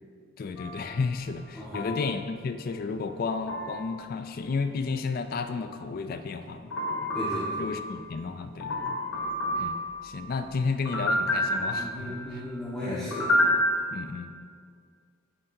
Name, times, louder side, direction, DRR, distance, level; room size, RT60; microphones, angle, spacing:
voice 1, 0.4-7.1 7.6-9.0 9.6-9.8 10.0-12.4 12.8-13.1 13.9-14.3, left 4 dB, 40° left, 9 dB, 0.3 m, -32 dB
sound 1, 0.6-0.9 1.7-2.1 3.5-3.9 6.7-7.9 8.6-10.1 10.8-12.3 13.1-13.8, left 1 dB, 60° left, 0.9 m, -28 dB
voice 2, 1.5-1.9 7.1-7.6 11.8-13.3, left 1 dB, 5° left, -12 dB, 1.2 m, -35 dB
8.7 x 7.4 x 2.7 m, 2.1 s
head